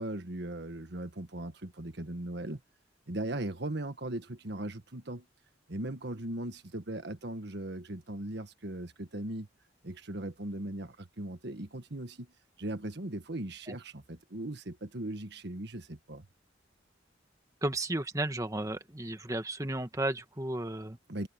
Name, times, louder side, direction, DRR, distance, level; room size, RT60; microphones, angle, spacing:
voice 1, 0.0-2.6 3.1-5.3 5.7-9.5 9.8-12.3 12.6-16.3 21.1-21.3, right 1 dB, 60° right, 1.6 m, -38 dB
voice 2, 17.6-21.0, right 1 dB, 20° right, 1.6 m, -33 dB
head